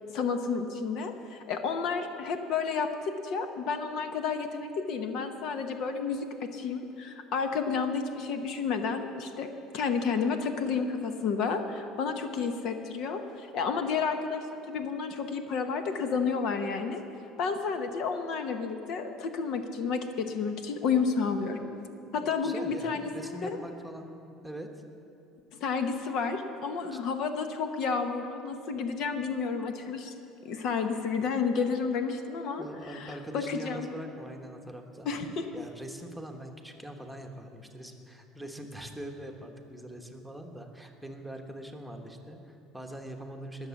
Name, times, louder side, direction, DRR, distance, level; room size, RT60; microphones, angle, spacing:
voice 1, 0.1-9.5 9.7-17.0 17.4-21.7 22.1-23.6 25.6-30.1 30.4-33.9 35.0-35.5, left 5 dB, 60° left, 7 dB, 1.0 m, -31 dB
voice 2, 22.1-24.1 24.4-24.7 26.9-27.0 32.6-35.1 35.5-43.7, right 1 dB, ahead, 3 dB, 1.2 m, -42 dB
19.5 x 7.4 x 7.2 m, 2.7 s
supercardioid pair, 115°, 0 cm